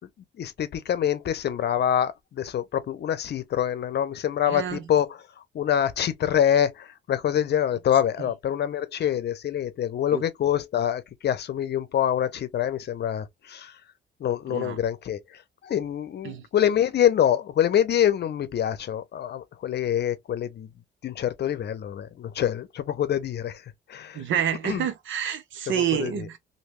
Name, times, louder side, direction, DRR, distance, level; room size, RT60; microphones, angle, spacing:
voice 1, 0.4-5.2 5.5-13.7 14.2-15.2 15.6-20.7 21.0-23.6 23.9-24.2 24.6-24.9 25.7-26.3, left 10 dB, 55° left, 0.7 m, -25 dB
voice 2, 4.5-4.8 8.2-8.3 10.1-10.2 14.5-14.8 16.2-16.4 24.1-26.4, right 9 dB, 75° right, 0.9 m, -28 dB
3.1 x 2.6 x 3.0 m
cardioid pair, 90°, 20 cm